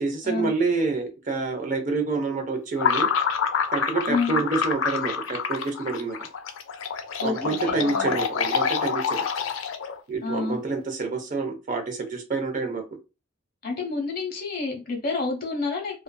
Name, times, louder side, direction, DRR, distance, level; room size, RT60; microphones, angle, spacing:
voice 1, 0.0-3.1 3.7-6.2 7.2-9.3 10.1-12.8, right 3 dB, 45° right, 5 dB, 0.5 m, -27 dB
sound 1, 2.8-10.0, left 6 dB, 80° left, 0.4 m, -27 dB
voice 2, 4.1-4.4 7.2-8.1 10.2-10.6 13.6-16.0, left 4 dB, 50° left, 1 dB, 0.9 m, -29 dB
2.5 x 2.4 x 2.2 m, 0.28 s
head